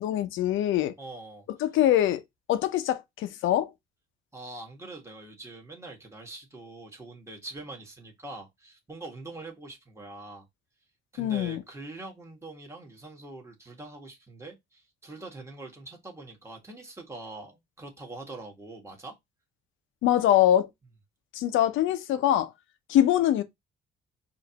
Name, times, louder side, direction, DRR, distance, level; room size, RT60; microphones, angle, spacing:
voice 1, 0.0-0.9 1.6-2.2 2.5-3.7 11.2-11.6 20.0-20.7 21.3-22.5 22.9-23.4, left 12 dB, 85° left, 0.6 m, -23 dB
voice 2, 1.0-1.5 4.3-10.5 11.1-19.2, right 2 dB, 15° right, 1.4 m, -43 dB
5.0 x 2.6 x 2.8 m
cardioid pair, 90°, 20 cm